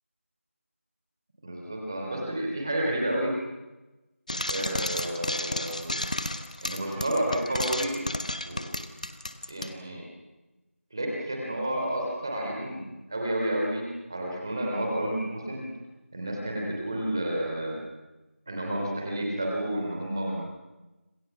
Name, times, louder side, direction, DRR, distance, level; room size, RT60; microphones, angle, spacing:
voice 1, 1.4-3.3 4.5-6.0 6.6-8.0 8.4-8.6 9.5-10.0 10.9-13.8 14.1-15.6 16.1-17.8 18.5-20.4, right 1 dB, 15° right, -1 dB, 3.5 m, -30 dB
Frying (food), 4.3-9.7, left 1 dB, 30° left, 1.3 m, -32 dB
30.0 x 27.0 x 6.1 m, 1.1 s
figure-of-eight pair, 180°, 8 cm